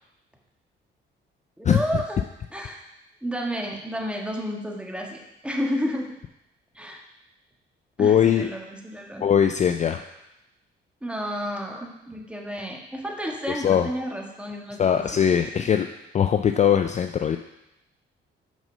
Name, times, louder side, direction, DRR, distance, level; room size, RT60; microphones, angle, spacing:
voice 1, 1.6-2.2 2.5-2.8 3.2-6.1 6.7-7.0 8.0-9.3 11.0-15.7, equal, 5° right, 0 dB, 1.5 m, -31 dB
voice 2, 8.0-8.5 9.2-10.0 13.6-13.9 14.8-15.9 16.1-17.4, left 8 dB, 35° left, 7 dB, 0.4 m, -20 dB
6.1 x 5.3 x 5.5 m, 0.88 s
cardioid pair, 90°, 20 cm